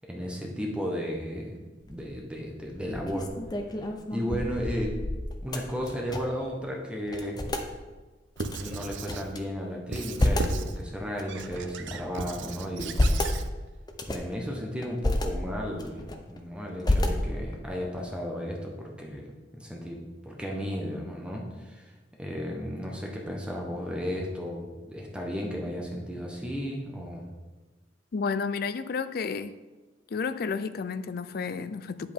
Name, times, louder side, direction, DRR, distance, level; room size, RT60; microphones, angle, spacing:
voice 1, 0.0-1.6 1.8-3.3 4.1-5.0 5.4-7.5 8.5-12.9 14.1-16.0 16.3-21.9 22.2-27.2, equal, 5° right, 1.2 m, -34 dB
sound 1, 1.8-2.2 2.7-6.5 6.7-6.8 7.1-7.7 8.4-9.4 9.8-10.6 11.2-12.1 12.6-13.4 13.9-14.3 14.8-15.3 15.7-16.4 16.8-17.6, left 1 dB, 20° left, 0.7 m, -29 dB
Squeak / Writing, 8.4-9.3 9.9-10.8 11.3-13.5, right 4 dB, 80° right, 0.5 m, -37 dB
voice 2, 28.1-29.5 30.1-32.1, left 5 dB, 55° left, 0.4 m, -31 dB
9.2 x 7.8 x 3.6 m
head